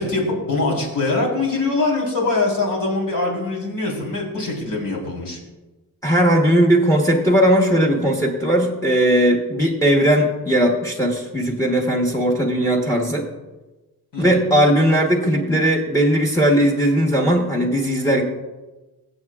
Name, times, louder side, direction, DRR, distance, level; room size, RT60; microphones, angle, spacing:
voice 1, 0.0-5.4 14.1-14.4, left 3 dB, 65° left, -2 dB, 3.9 m, -23 dB
voice 2, 6.0-13.3 14.2-18.2, equal, 10° left, 0 dB, 1.2 m, -18 dB
23.0 x 7.7 x 2.4 m, 1.2 s
wide cardioid pair, 130°, 36 cm